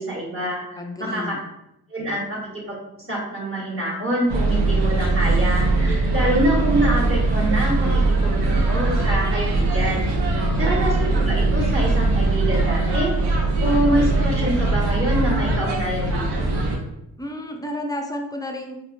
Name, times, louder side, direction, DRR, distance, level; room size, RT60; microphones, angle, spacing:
voice 1, 0.0-1.3 1.9-2.7 3.1-16.5, right 1 dB, 30° right, -5 dB, 1.3 m, -26 dB
voice 2, 0.8-1.4 10.3-10.7 17.2-18.8, left 1 dB, 10° left, 2 dB, 0.5 m, -32 dB
sound 1, 4.3-16.8, right 2 dB, 65° right, 0.8 m, -21 dB
3.4 x 2.1 x 2.7 m, 0.84 s
supercardioid pair, 50°, 42 cm